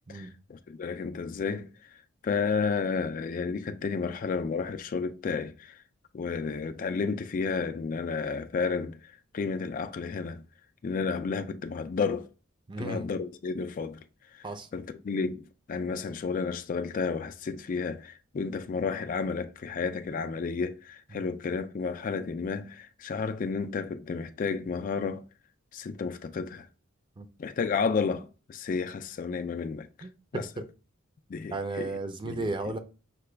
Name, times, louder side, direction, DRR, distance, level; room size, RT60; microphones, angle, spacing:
voice 1, 0.1-1.7 2.2-5.8 6.1-9.0 9.3-10.4 10.8-12.3 12.8-14.0 14.7-25.2 25.7-26.7 27.4-29.9 30.3-30.5 31.3-31.9 32.2-32.5, left 5 dB, 40° left, 0.3 m, -31 dB
voice 2, 12.7-13.0 14.4-14.7 21.1-21.3 27.2-27.3 30.0-30.6 31.5-32.8, right 2 dB, 25° right, 0.5 m, -34 dB
5.7 x 2.3 x 3.2 m
head